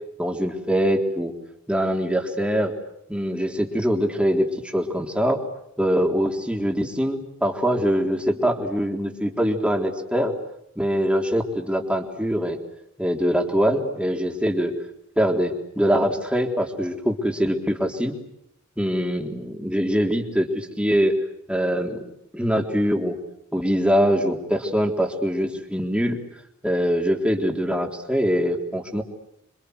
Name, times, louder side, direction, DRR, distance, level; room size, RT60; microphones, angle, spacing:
voice 1, 0.2-1.3 1.7-2.7 3.1-5.4 5.8-10.3 10.8-12.6 13.0-14.7 15.2-18.1 18.8-21.2 21.5-22.0 22.3-23.2 23.5-26.2 26.6-29.0, equal, 5° right, 2 dB, 3.7 m, -23 dB
27.5 x 26.0 x 8.1 m, 0.77 s
head